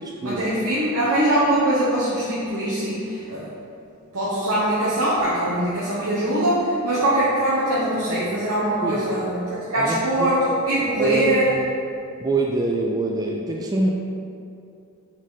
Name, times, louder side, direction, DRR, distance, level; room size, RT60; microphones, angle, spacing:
voice 1, 0.2-3.4 4.1-11.5, right 1 dB, 80° right, -9 dB, 1.1 m, -22 dB
voice 2, 9.8-10.3 10.9-11.6 12.2-13.9, right 2 dB, 15° right, -1 dB, 0.4 m, -25 dB
6.1 x 4.4 x 3.9 m, 2.6 s
head